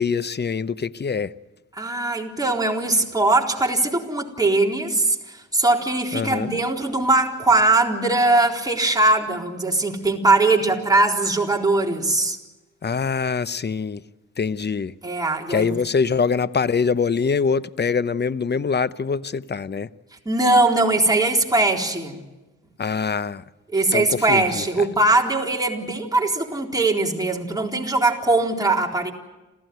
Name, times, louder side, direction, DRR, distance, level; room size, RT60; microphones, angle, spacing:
voice 1, 0.0-1.3 6.1-6.5 12.8-14.0 14.4-14.9 15.5-19.9 22.8-23.4 23.9-24.9, left 5 dB, 30° left, 0.8 m, -24 dB
voice 2, 1.8-12.4 15.0-15.8 20.3-22.2 23.7-29.1, right 2 dB, 10° right, 3.9 m, -20 dB
27.5 x 15.0 x 9.4 m
cardioid pair, 65°, 32 cm